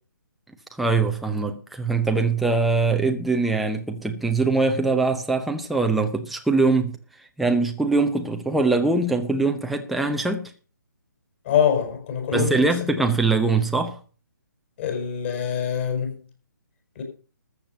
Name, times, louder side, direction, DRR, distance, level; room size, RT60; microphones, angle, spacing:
voice 1, 0.7-7.0 7.4-10.5 12.3-14.0, right 3 dB, ahead, 0.7 m, -22 dB
voice 2, 11.4-12.6 14.8-16.2 16.9-17.0, left 8 dB, 35° left, 5.1 m, -24 dB
13.5 x 7.2 x 6.7 m
figure-of-eight pair, 145°, 11 cm